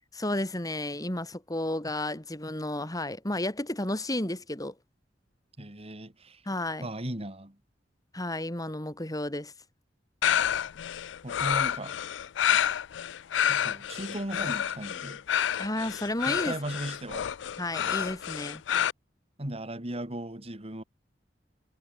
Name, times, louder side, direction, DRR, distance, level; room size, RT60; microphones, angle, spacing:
voice 1, 0.1-4.7 6.5-6.9 8.1-9.5 15.6-16.6 17.6-18.6, left 1 dB, 20° left, 2.9 m, -32 dB
voice 2, 5.6-6.4 6.8-7.6 11.2-12.0 13.5-15.2 16.3-17.3 17.9-18.1 19.4-20.8, right 1 dB, 35° right, 3.1 m, -37 dB
sound 1, 10.2-18.9, left 9 dB, 85° left, 0.4 m, -29 dB
head